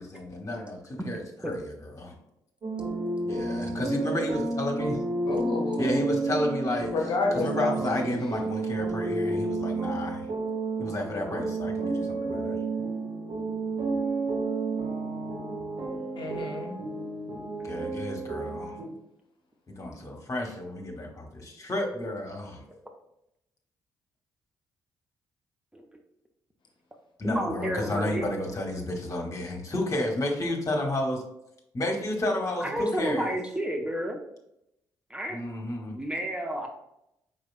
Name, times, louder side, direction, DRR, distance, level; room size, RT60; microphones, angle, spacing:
voice 1, 0.0-2.1 3.2-5.0 5.8-6.9 7.3-10.3 10.8-12.6 17.6-18.8 19.7-22.6 27.2-31.2 31.7-33.3 35.3-36.0, left 1 dB, 30° left, 1 dB, 1.3 m, -31 dB
sound 1, 2.6-18.9, right 3 dB, 45° right, 1.1 m, -31 dB
voice 2, 5.2-6.0 6.9-8.3 16.2-16.7 32.7-32.8, left 3 dB, 45° left, 1 dB, 0.8 m, -30 dB
voice 3, 27.2-28.3 32.6-34.2 35.1-35.4 35.9-36.7, equal, 10° right, 2 dB, 0.7 m, -31 dB
4.9 x 4.1 x 2.5 m, 0.82 s
figure-of-eight pair, 40°, 11 cm